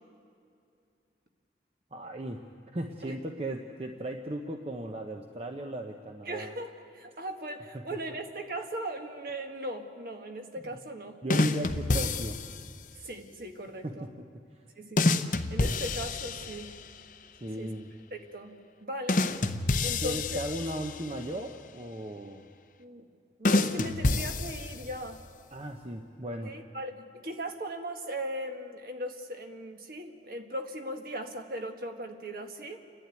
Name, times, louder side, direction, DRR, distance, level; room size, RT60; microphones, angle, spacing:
voice 1, 1.9-2.4 2.7-6.5 7.7-7.8 11.2-12.4 13.8-14.1 17.4-17.9 20.0-22.5 25.5-26.5, right 1 dB, 35° right, 3 dB, 0.9 m, -36 dB
voice 2, 6.3-11.2 13.0-14.1 14.8-16.7 17.6-17.7 18.1-18.6 18.8-19.3 19.8-20.4 22.8-23.1 23.4-25.2 26.4-32.8, right 1 dB, 55° right, 4 dB, 1.6 m, -38 dB
sound 1, 11.3-12.7 15.0-16.9 19.1-21.2 23.5-25.1, left 2 dB, 45° left, 0.7 m, -28 dB
29.5 x 11.5 x 9.1 m, 2.4 s
head